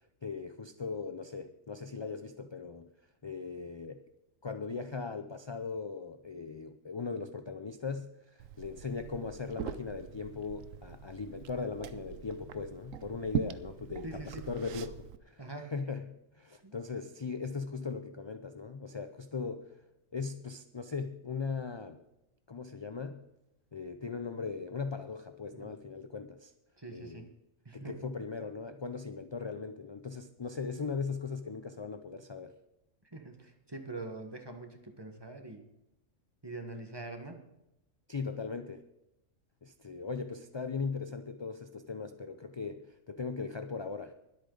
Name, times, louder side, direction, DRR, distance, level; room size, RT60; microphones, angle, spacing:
voice 1, 0.2-2.9 3.2-4.0 4.4-15.4 15.7-19.7 20.1-22.0 22.5-23.2 23.7-26.5 26.9-27.3 27.7-32.5 38.1-38.8 39.6-44.1, left 4 dB, 40° left, 8 dB, 0.4 m, -39 dB
Liquid, 8.4-15.2, right 10 dB, 85° right, 1.1 m, -42 dB
voice 2, 14.0-14.5 15.4-15.7 16.6-16.7 25.5-25.7 26.8-27.3 27.6-28.1 33.0-35.6 36.4-37.4, right 2 dB, 20° right, 5 dB, 1.4 m, -44 dB
21.0 x 8.5 x 3.9 m, 0.88 s
omnidirectional pair, 1.3 m